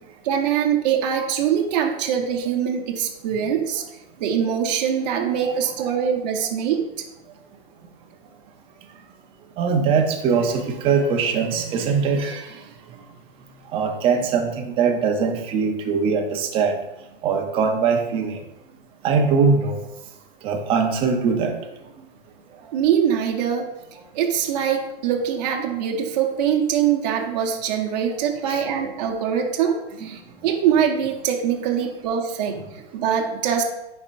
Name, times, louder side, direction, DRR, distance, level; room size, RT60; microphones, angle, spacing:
voice 1, 0.2-3.8 4.2-6.8 22.7-23.7 24.1-33.6, right 8 dB, 45° right, 1 dB, 0.9 m, -23 dB
voice 2, 9.6-12.4 13.7-16.7 17.2-18.4 19.0-19.8 20.4-21.5 28.5-28.6 30.0-30.1, right 5 dB, 20° right, 3 dB, 0.6 m, -21 dB
9.8 x 4.3 x 2.6 m, 0.92 s
hypercardioid pair, 150°, 30 cm